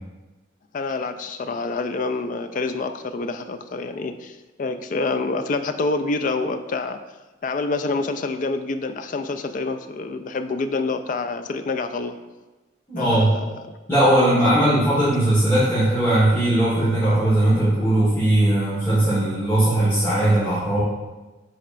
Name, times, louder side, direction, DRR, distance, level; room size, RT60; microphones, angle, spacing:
voice 1, 0.7-7.0 7.4-12.1 13.0-13.4 14.7-14.8, left 3 dB, 45° left, 8 dB, 0.4 m, -27 dB
voice 2, 12.9-13.3 13.9-20.8, right 1 dB, 15° left, -11 dB, 1.5 m, -19 dB
9.9 x 4.1 x 2.5 m, 1.1 s
head